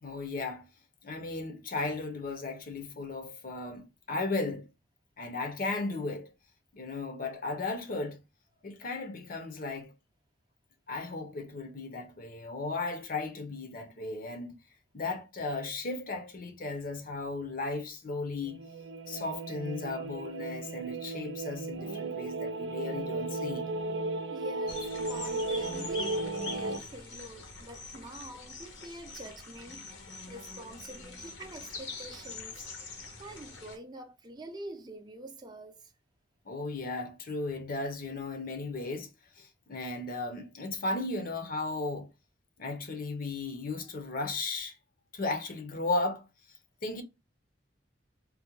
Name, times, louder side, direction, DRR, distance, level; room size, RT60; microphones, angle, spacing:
voice 1, 0.0-0.7 1.0-4.7 5.2-6.3 6.7-8.2 8.6-9.9 10.9-14.6 14.9-18.6 19.1-23.7 36.5-39.1 39.4-42.1 42.6-44.8 45.1-46.3 46.8-47.0, left 3 dB, 50° left, 0.6 m, -35 dB
sound 1, 18.4-26.8, right 2 dB, 70° right, 0.5 m, -35 dB
voice 2, 24.3-29.8 30.3-32.9 33.2-35.9, right 1 dB, 20° right, 0.5 m, -46 dB
sound 2, 24.7-33.8, left 3 dB, 75° left, 0.9 m, -44 dB
3.7 x 2.1 x 2.9 m
head